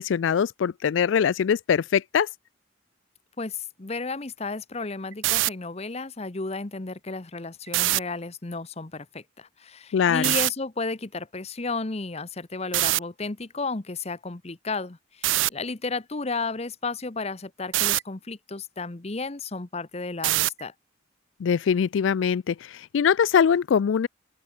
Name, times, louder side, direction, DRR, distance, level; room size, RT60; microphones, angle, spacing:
voice 1, 0.0-2.3 9.9-10.3 21.4-24.1, left 7 dB, 80° left, 0.4 m, -22 dB
voice 2, 3.4-20.7, left 3 dB, 35° left, 0.9 m, -33 dB
sound 1, 5.1-5.5 7.7-8.0 10.2-10.5 12.7-13.0 15.2-15.5 17.7-18.0 20.2-20.6, right 17 dB, 80° right, 0.4 m, -22 dB
open air
head